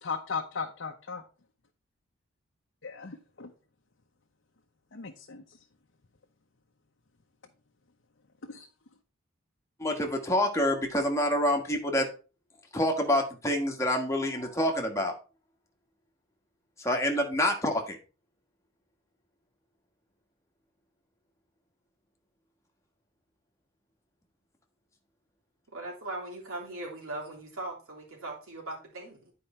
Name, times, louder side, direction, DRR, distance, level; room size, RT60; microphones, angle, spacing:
voice 1, 0.0-1.2 2.8-3.5 4.9-5.4 8.5-8.7, left 5 dB, 60° left, 0.8 m, -36 dB
voice 2, 9.8-12.1 12.7-15.1 16.8-18.0, left 1 dB, 15° left, 1.4 m, -27 dB
voice 3, 25.7-29.3, right 2 dB, 80° right, 3.2 m, -39 dB
9.6 x 4.8 x 4.3 m
head